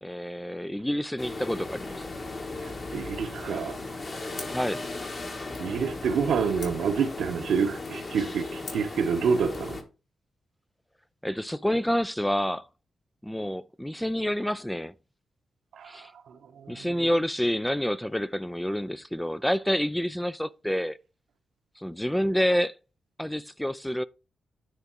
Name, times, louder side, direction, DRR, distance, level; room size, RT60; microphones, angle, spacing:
voice 1, 0.0-2.1 4.5-4.8 11.2-12.7 13.2-14.9 15.8-16.1 16.7-21.0 21.8-22.7 23.2-24.0, equal, 5° left, 0.3 m, -28 dB
sound 1, 1.2-9.8, left 2 dB, 35° left, 1.4 m, -37 dB
voice 2, 2.9-3.8 5.6-9.8 15.7-17.1, right 6 dB, 85° right, 1.1 m, -28 dB
sound 2, 4.3-9.7, left 4 dB, 60° left, 3.4 m, -49 dB
9.7 x 3.7 x 4.6 m
wide cardioid pair, 115°, 0 cm